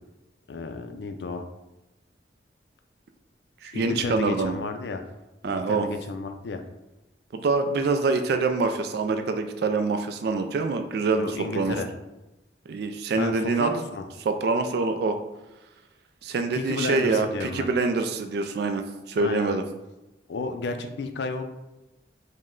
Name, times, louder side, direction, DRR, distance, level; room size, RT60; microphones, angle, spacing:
voice 1, 0.5-1.5 3.7-5.0 5.4-6.6 11.2-11.9 13.1-14.0 16.5-17.7 19.2-19.6 20.3-21.4, left 3 dB, 70° left, 6 dB, 0.4 m, -32 dB
voice 2, 3.6-4.6 5.4-5.9 7.3-11.7 12.7-13.7 14.3-15.2 16.2-19.6, right 4 dB, 60° right, 7 dB, 0.3 m, -25 dB
5.2 x 2.1 x 3.6 m, 0.99 s
head